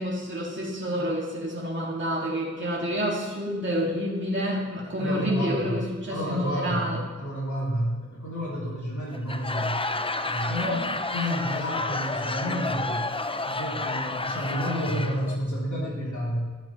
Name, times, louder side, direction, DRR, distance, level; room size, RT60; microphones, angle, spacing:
voice 1, 0.0-7.0 10.6-10.9, equal, 40° right, -5 dB, 2.5 m, -29 dB
voice 2, 5.0-5.8 6.1-9.8 10.2-13.0 13.4-16.4, equal, 85° left, -6 dB, 3.5 m, -30 dB
Laughter / Crowd, 9.1-15.4, left 2 dB, 20° left, 0.5 m, -30 dB
13.5 x 8.6 x 3.3 m, 1.4 s
wide cardioid pair, 85°, 29 cm